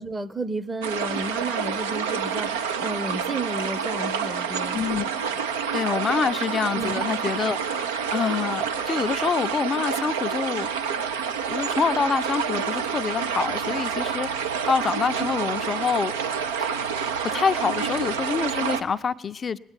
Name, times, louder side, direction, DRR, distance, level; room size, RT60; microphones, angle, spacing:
voice 1, 0.0-4.9 6.7-7.0, right 2 dB, 20° right, 0.8 m, -32 dB
sound 1, 0.8-18.8, right 7 dB, 80° right, 0.6 m, -28 dB
voice 2, 4.7-5.1 5.7-10.9 11.5-16.1 16.6-16.9 17.2-19.6, left 6 dB, 35° left, 0.4 m, -26 dB
19.5 x 8.9 x 7.3 m
figure-of-eight pair, 55°, 0 cm